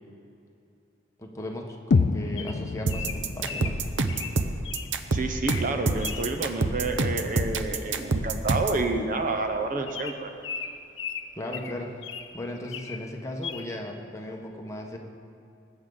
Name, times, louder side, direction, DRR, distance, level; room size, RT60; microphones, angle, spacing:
voice 1, 1.2-3.8 11.3-11.9 12.3-15.0, left 1 dB, 15° left, 0 dB, 1.2 m, -36 dB
sound 1, 1.9-5.9, left 4 dB, 60° left, 0.4 m, -29 dB
Bird vocalization bird call bird song, 2.4-4.9 5.3-5.7 6.0-6.3 7.8-8.0 8.3-8.4 8.6-8.8 9.3-9.4 9.9-12.3 12.6-13.0 13.4-13.7, left 6 dB, 85° left, 0.8 m, -37 dB
sound 2, 2.9-8.8, right 3 dB, 80° right, 0.7 m, -27 dB
voice 2, 5.1-10.3, right 3 dB, 45° right, 5 dB, 0.9 m, -29 dB
20.0 x 9.3 x 4.0 m, 2.6 s
head